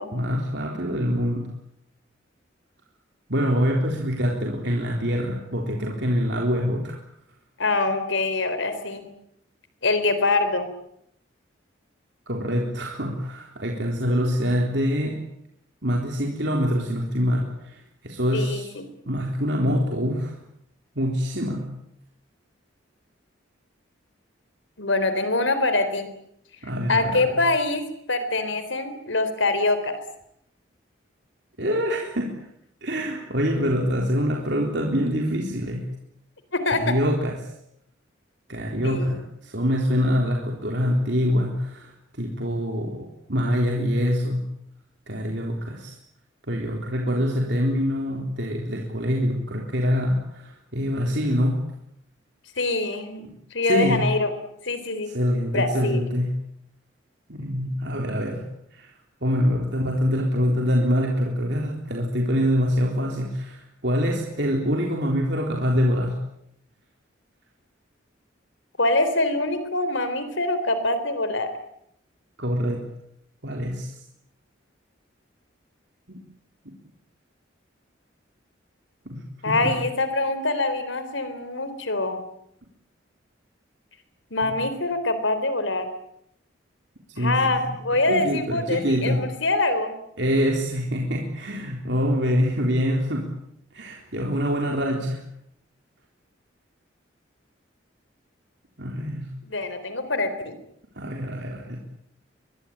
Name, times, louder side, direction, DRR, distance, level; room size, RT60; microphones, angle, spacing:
voice 1, 0.1-1.5 3.3-7.0 12.3-15.2 15.8-18.7 19.1-20.3 21.0-21.7 26.6-27.4 31.6-32.3 32.8-35.9 36.7-37.4 38.5-44.4 45.1-45.9 46.5-51.6 53.6-54.0 55.1-56.3 57.3-58.4 58.7-58.9 59.2-66.2 72.4-72.8 73.4-73.9 76.1-76.2 76.6-76.7 79.1-79.7 84.4-84.5 87.2-87.7 88.1-89.2 90.2-93.3 93.7-95.2 98.8-99.3 101.0-101.8, equal, 60° right, 0 dB, 3.8 m, -25 dB
voice 2, 7.6-9.1 9.8-10.7 18.3-18.9 24.8-26.1 26.9-29.9 36.5-37.0 38.8-39.1 52.6-54.3 54.6-55.1 55.5-56.0 68.8-71.5 79.4-82.2 84.3-85.9 87.2-89.9 99.4-100.6, left 2 dB, 75° left, 11 dB, 3.9 m, -24 dB
23.5 x 23.0 x 8.9 m, 0.75 s
head